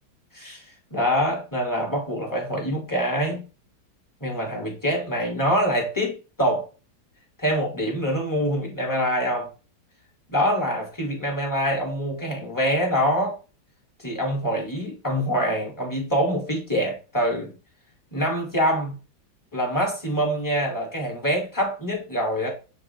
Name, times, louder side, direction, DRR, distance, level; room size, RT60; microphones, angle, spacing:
voice 1, 0.3-3.4 4.2-6.7 7.4-9.5 10.3-13.4 14.0-17.5 18.1-19.0 19.5-22.5, equal, 15° left, 0.8 m, -25 dB
7.2 x 2.7 x 2.7 m
omnidirectional pair, 2.1 m